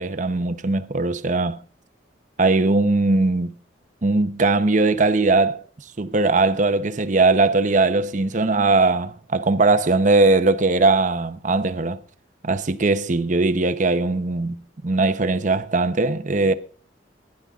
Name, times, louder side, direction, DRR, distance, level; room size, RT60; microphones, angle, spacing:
voice 1, 0.0-1.6 2.4-3.6 4.0-5.6 6.0-12.0 12.4-16.5, right 3 dB, 40° right, 0.7 m, -20 dB
19.0 x 11.0 x 2.4 m
head